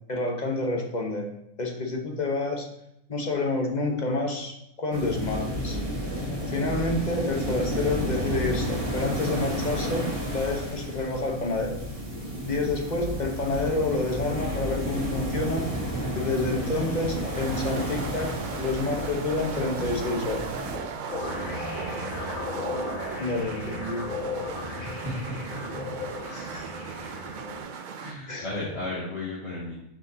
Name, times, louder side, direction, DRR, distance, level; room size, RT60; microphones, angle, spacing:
voice 1, 0.1-1.3 1.6-2.7 3.1-5.8 6.5-11.8 12.5-15.7 16.1-20.5 23.2-24.1 26.3-26.6 28.3-28.5, left 2 dB, 35° left, 2 dB, 1.2 m, -29 dB
sound 1, 4.9-20.8, equal, 25° right, 1.5 m, -31 dB
sound 2, 17.1-28.2, right 6 dB, 80° right, 0.4 m, -38 dB
sound 3, 21.1-27.6, left 3 dB, 85° left, 1.5 m, -35 dB
voice 2, 24.8-25.3 25.7-25.8 26.2-26.4 28.0-29.7, left 2 dB, 50° left, -11 dB, 2.7 m, -34 dB
7.7 x 6.4 x 2.8 m, 0.82 s
omnidirectional pair, 1.4 m